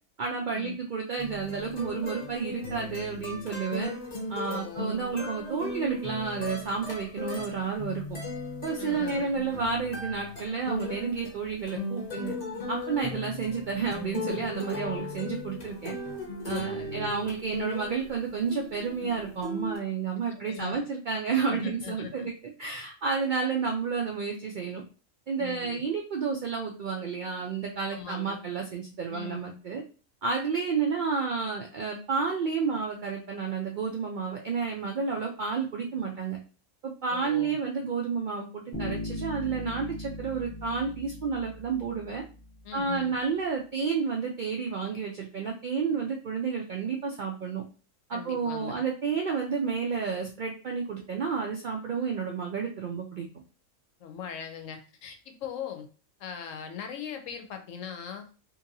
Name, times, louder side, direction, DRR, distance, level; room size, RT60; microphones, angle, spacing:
voice 1, 0.2-3.9 4.3-8.2 8.6-12.4 12.7-15.9 16.4-22.3 22.6-24.8 25.3-29.8 30.2-36.4 36.8-42.2 42.7-47.6 48.1-53.3, right 5 dB, 75° right, 0 dB, 0.4 m, -31 dB
sound 1, 1.2-18.2 18.5-19.8, left 2 dB, 40° left, 0.7 m, -37 dB
voice 2, 4.5-5.0 8.8-9.3 16.5-17.1 20.3-20.8 21.5-22.3 25.4-25.8 27.9-28.4 29.1-29.4 37.1-37.6 42.6-43.1 48.1-48.8 54.0-55.9 56.2-58.3, left 8 dB, 80° left, 6 dB, 1.0 m, -40 dB
Bass guitar, 38.7-42.4, left 1 dB, 20° left, 0.4 m, -38 dB
2.8 x 2.6 x 2.6 m, 0.35 s
omnidirectional pair, 1.4 m